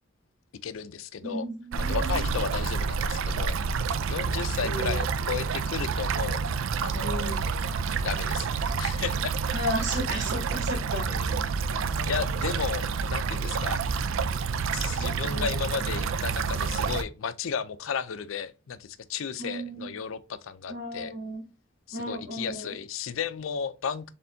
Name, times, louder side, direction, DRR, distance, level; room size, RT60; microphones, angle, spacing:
voice 1, 0.6-1.5 1.9-3.6 4.1-6.5 6.8-7.4 8.0-9.3 11.0-11.5 12.1-13.8 14.7-21.1 21.9-24.1, left 6 dB, 85° left, 0.4 m, -34 dB
voice 2, 1.2-2.2 4.6-5.0 7.0-7.4 9.5-11.1 11.6-12.3 15.3-15.7 19.4-19.9 20.7-21.4 21.9-22.7, equal, 65° right, 2.4 m, -34 dB
sound 1, 1.7-17.0, right 5 dB, 80° right, 0.4 m, -28 dB
4.2 x 3.6 x 2.6 m
head